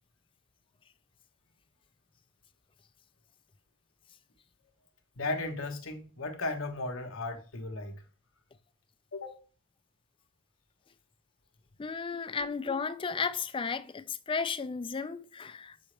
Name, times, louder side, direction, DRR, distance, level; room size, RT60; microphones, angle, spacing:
voice 1, 5.2-8.0 9.1-9.4 12.4-12.5, left 2 dB, 65° left, 1.1 m, -36 dB
voice 2, 11.8-15.8, left 5 dB, 25° left, 0.4 m, -34 dB
7.1 x 4.9 x 3.3 m
head